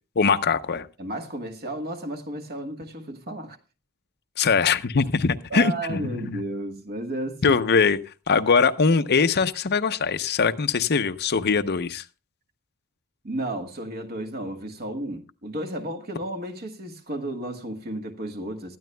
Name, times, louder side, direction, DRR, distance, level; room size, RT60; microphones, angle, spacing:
voice 1, 0.2-0.9 4.4-6.4 7.4-8.0 8.3-12.0, left 5 dB, 50° left, 0.7 m, -22 dB
voice 2, 1.0-3.6 5.5-7.6 8.3-8.4 13.2-18.8, right 1 dB, 45° right, 1.4 m, -33 dB
18.5 x 13.0 x 2.2 m
head